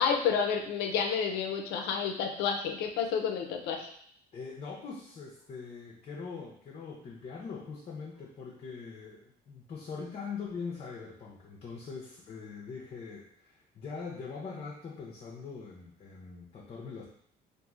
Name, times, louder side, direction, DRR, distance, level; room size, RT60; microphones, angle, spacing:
voice 1, 0.0-3.9, left 6 dB, 85° left, 4 dB, 0.5 m, -30 dB
voice 2, 4.3-17.0, left 5 dB, 40° left, -3 dB, 0.6 m, -42 dB
2.9 x 2.5 x 2.4 m, 0.65 s
cardioid pair, 110°, 17 cm